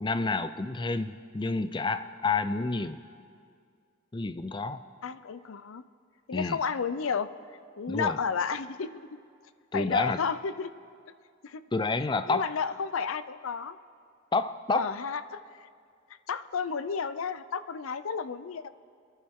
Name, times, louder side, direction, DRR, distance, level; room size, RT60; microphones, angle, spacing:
voice 1, 0.0-3.0 4.1-4.8 6.3-6.6 7.9-8.2 9.7-10.2 11.7-12.4 14.3-14.9, left 3 dB, 20° left, 11 dB, 0.5 m, -29 dB
voice 2, 5.0-5.8 6.3-7.3 7.8-9.1 9.7-10.7 11.4-11.6 12.3-13.8 14.7-15.7 16.3-18.7, left 5 dB, 80° left, 14 dB, 0.5 m, -32 dB
28.5 x 11.5 x 3.7 m, 2.2 s
head